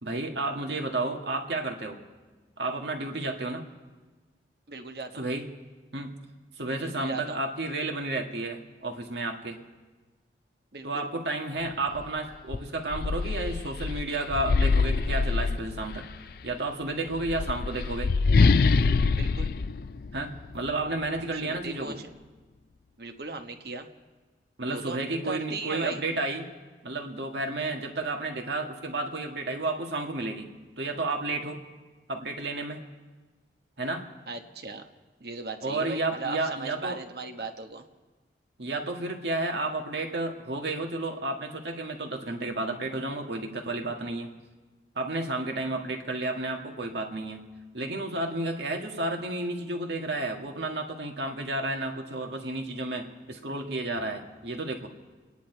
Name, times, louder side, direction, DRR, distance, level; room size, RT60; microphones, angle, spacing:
voice 1, 0.0-2.0 2.6-3.6 5.2-5.5 5.9-6.1 6.6-9.6 10.8-16.1 16.4-18.1 20.1-22.0 24.6-26.5 26.8-30.5 30.8-31.6 32.1-32.8 33.8-34.1 35.6-37.0 38.6-44.3 45.0-47.5 47.7-54.9, right 2 dB, 80° right, 2 dB, 1.8 m, -32 dB
voice 2, 4.7-5.2 6.8-7.4 10.7-11.1 19.1-19.5 21.4-22.1 23.0-23.9 24.7-26.0 34.3-34.8 35.2-37.9, right 3 dB, 60° right, 6 dB, 1.2 m, -37 dB
sound 1, 11.9-12.1 12.5-16.1 17.1-20.7, left 4 dB, 55° left, 0.4 m, -25 dB
30.0 x 10.5 x 4.5 m, 1.3 s
head